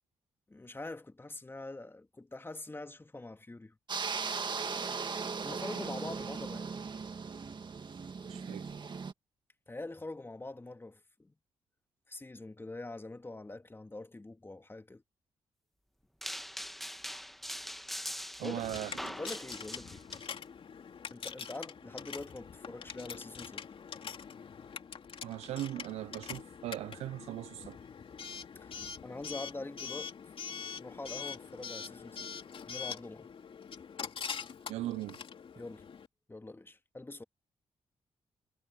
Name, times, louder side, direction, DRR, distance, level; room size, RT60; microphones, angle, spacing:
voice 1, 0.5-3.7 5.4-6.8 9.7-11.3 12.1-15.0 18.4-18.6 19.2-20.1 21.1-23.6 28.6-30.1 30.8-32.3 32.6-33.3 35.6-35.9 36.3-37.2, left 2 dB, 20° left, 2.3 m, -44 dB
sound 1, 3.9-9.1, right 5 dB, 45° right, 2.1 m, -38 dB
voice 2, 8.2-8.7 18.4-19.2 25.2-27.8 34.7-35.2, right 14 dB, 85° right, 0.5 m, -39 dB
sound 2, 16.2-20.2, equal, ahead, 2.0 m, -42 dB
Coin (dropping) / Alarm, 18.6-36.1, left 6 dB, 60° left, 3.2 m, -44 dB
supercardioid pair, 55°, 11 cm